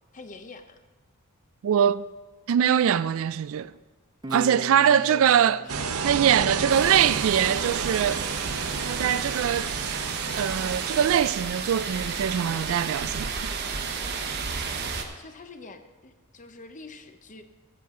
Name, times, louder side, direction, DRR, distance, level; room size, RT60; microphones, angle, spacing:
voice 1, 0.1-0.8 4.3-4.4 4.7-7.7 15.2-17.4, left 3 dB, 35° left, 0.7 m, -44 dB
voice 2, 1.6-2.1 2.5-3.7 4.3-5.6 6.0-8.2 8.8-9.7 10.3-13.6, right 9 dB, 65° right, 0.3 m, -23 dB
Guitar, 4.2-7.5, equal, 20° right, 0.6 m, -41 dB
sound 1, 5.7-11.2, right 6 dB, 80° right, 0.7 m, -31 dB
sound 2, 6.7-15.1, right 5 dB, 50° right, 1.0 m, -33 dB
14.0 x 8.9 x 3.7 m
head